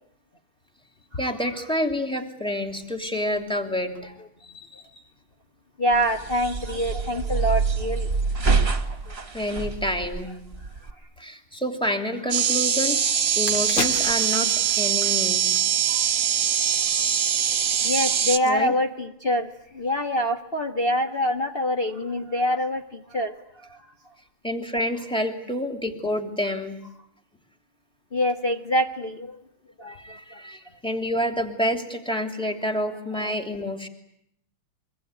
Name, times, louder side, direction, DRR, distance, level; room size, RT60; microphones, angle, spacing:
voice 1, 1.2-4.1 4.4-4.8 9.3-10.4 11.2-14.5 14.8-15.6 18.4-18.7 24.4-26.8 29.9-33.9, left 1 dB, ahead, 6 dB, 2.8 m, -28 dB
voice 2, 5.8-8.1 9.1-9.2 15.9-16.1 17.8-23.3 28.1-29.4 29.8-30.4, equal, 30° left, 5 dB, 1.3 m, -25 dB
sound 1, 5.9-10.9, right 4 dB, 30° right, 2.0 m, -26 dB
sound 2, 12.3-18.4, right 9 dB, 55° right, 1.8 m, -22 dB
sound 3, 12.8-12.9 13.2-16.5 16.8-17.0, left 4 dB, 55° left, 2.8 m, -35 dB
24.5 x 24.5 x 9.7 m, 0.75 s
omnidirectional pair, 2.4 m